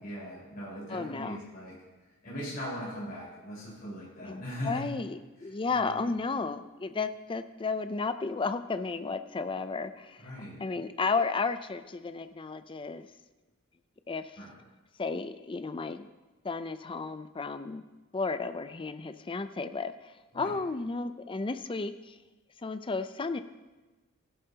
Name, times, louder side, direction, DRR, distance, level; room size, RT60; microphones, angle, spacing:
voice 1, 0.0-1.7 2.2-4.8 5.7-6.1 10.2-10.6 14.4-14.5 20.3-20.5, equal, 45° left, -7 dB, 4.6 m, -39 dB
voice 2, 0.9-1.4 4.2-10.3 10.6-13.1 14.1-14.4 15.0-16.1 16.4-17.8 18.1-22.2 22.6-23.4, left 4 dB, 25° left, 11 dB, 0.4 m, -33 dB
16.0 x 11.0 x 2.9 m, 1.2 s
head